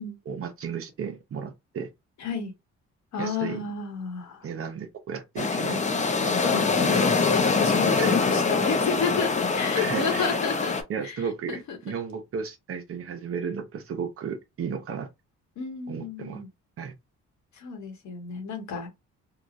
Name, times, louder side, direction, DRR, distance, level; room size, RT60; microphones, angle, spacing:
voice 1, 0.3-1.9 3.2-3.6 4.4-5.8 6.8-7.2 8.0-8.2 9.8-10.4 10.9-15.1 15.9-16.4 16.8-16.9, right 6 dB, 50° right, 0.7 m, -34 dB
voice 2, 2.2-2.5 3.1-4.5 6.4-10.7 11.0-11.9 15.6-16.5 17.5-18.9, left 5 dB, 65° left, 1.2 m, -31 dB
sound 1, 5.4-10.8, left 4 dB, 25° left, 0.6 m, -24 dB
3.0 x 2.3 x 2.5 m
cardioid pair, 90°, 30 cm